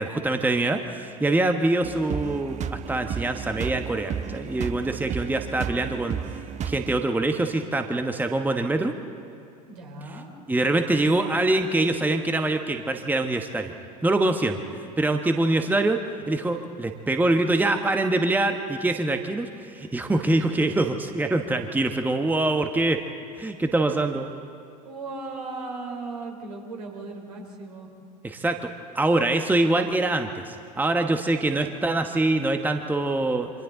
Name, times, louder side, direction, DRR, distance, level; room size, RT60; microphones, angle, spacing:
voice 1, 0.0-6.2 6.6-8.9 10.5-13.7 14.0-14.6 15.0-16.0 16.3-23.0 23.3-24.3 28.2-28.7 28.9-33.5, right 2 dB, 10° right, 6 dB, 1.3 m, -24 dB
sound 1, 1.8-7.0, right 7 dB, 35° right, 0.9 m, -33 dB
voice 2, 9.6-10.3 24.8-27.9 31.5-31.8, right 3 dB, 70° right, 1 dB, 3.6 m, -37 dB
28.0 x 25.5 x 3.9 m, 2.4 s
figure-of-eight pair, 70°, 20 cm